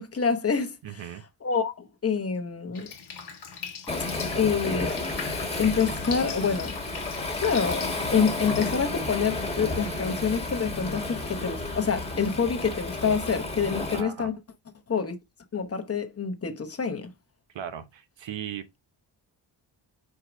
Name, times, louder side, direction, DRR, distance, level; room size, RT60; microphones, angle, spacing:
voice 1, 0.0-1.1 1.4-2.9 4.3-4.9 5.6-6.7 7.4-14.3 14.9-15.2 15.5-17.1, left 6 dB, 30° left, 1.0 m, -27 dB
voice 2, 0.8-1.2 13.9-14.3 17.5-18.8, right 9 dB, 75° right, 1.1 m, -37 dB
Drip, 2.7-8.7, left 6 dB, 60° left, 1.2 m, -40 dB
Waves surf, 3.9-14.0, left 2 dB, 15° left, 1.5 m, -32 dB
4.7 x 4.7 x 5.0 m
wide cardioid pair, 130°, 45 cm